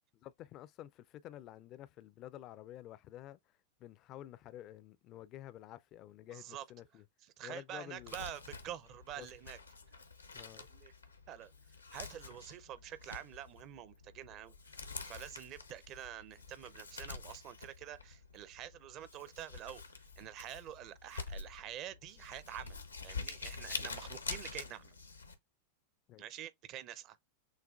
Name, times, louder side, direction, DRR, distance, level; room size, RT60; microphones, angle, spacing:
voice 1, 0.2-7.0 7.4-8.2 9.2-9.3 10.3-10.7 26.1-26.2, left 13 dB, 35° left, 0.3 m, -51 dB
voice 2, 6.3-6.6 7.2-9.6 10.6-10.9 11.3-11.5 11.9-14.8 15.0-19.8 20.2-24.9 26.2-27.2, right 11 dB, 35° right, 0.5 m, -47 dB
Crumpling crinkling, 8.0-25.3, left 4 dB, 80° left, 0.6 m, -47 dB
6.4 x 2.3 x 2.3 m
figure-of-eight pair, 90°, 0 cm